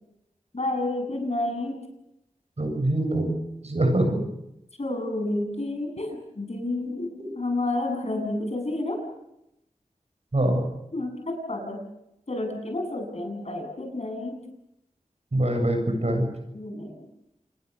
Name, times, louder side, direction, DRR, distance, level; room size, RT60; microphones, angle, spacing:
voice 1, 0.5-1.8 4.8-9.0 10.9-11.8 12.3-14.4 16.5-17.1, left 2 dB, 55° left, 4 dB, 7.9 m, -30 dB
voice 2, 2.6-3.4 3.6-4.2 7.2-7.3 10.3-10.6 15.3-16.2, right 1 dB, 55° right, 5 dB, 7.6 m, -24 dB
28.0 x 21.0 x 7.0 m, 0.85 s
wide cardioid pair, 60°, 13 cm